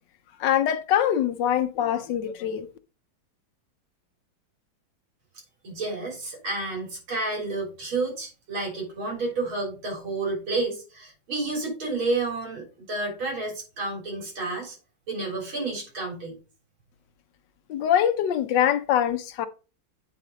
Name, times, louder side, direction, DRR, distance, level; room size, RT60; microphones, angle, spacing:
voice 1, 0.4-2.7 17.7-19.5, left 10 dB, 70° left, 1.2 m, -23 dB
voice 2, 5.6-14.8 15.1-16.4, right 3 dB, 85° right, 4.3 m, -30 dB
9.2 x 4.2 x 3.9 m
omnidirectional pair, 2.2 m